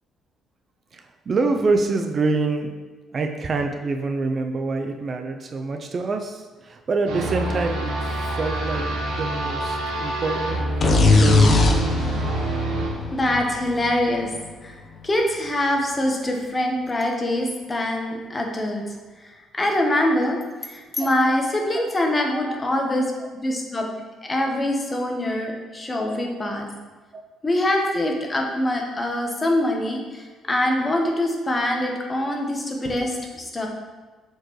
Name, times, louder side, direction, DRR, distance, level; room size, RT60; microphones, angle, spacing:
voice 1, 0.9-2.7 3.1-11.6 22.3-22.6 26.4-26.5 27.1-27.2, right 3 dB, 40° right, 5 dB, 0.4 m, -26 dB
sound 1, 7.1-12.9, right 2 dB, 85° right, 1.2 m, -26 dB
sound 2, 10.8-14.5, left 3 dB, 40° left, 0.7 m, -20 dB
voice 2, 13.1-14.3 14.6-19.0 19.2-23.1 23.4-23.8 24.2-26.7 27.4-33.7, left 1 dB, 20° left, 1 dB, 1.0 m, -24 dB
7.5 x 4.5 x 3.1 m, 1.3 s
cardioid pair, 115°, 0 cm